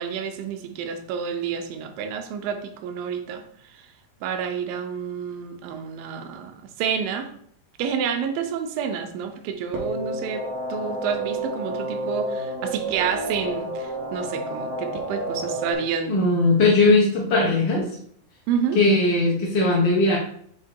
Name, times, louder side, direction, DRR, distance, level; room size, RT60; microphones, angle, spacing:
voice 1, 0.0-3.4 4.2-6.5 6.8-7.3 7.8-10.4 10.7-16.2 18.5-18.8, right 7 dB, 85° right, 5 dB, 2.5 m, -29 dB
sound 1, 9.7-15.7, right 1 dB, 65° right, 2.5 m, -30 dB
voice 2, 16.1-17.9 18.7-20.2, left 2 dB, 90° left, -3 dB, 1.0 m, -19 dB
8.1 x 2.9 x 4.6 m, 0.65 s
omnidirectional pair, 4.0 m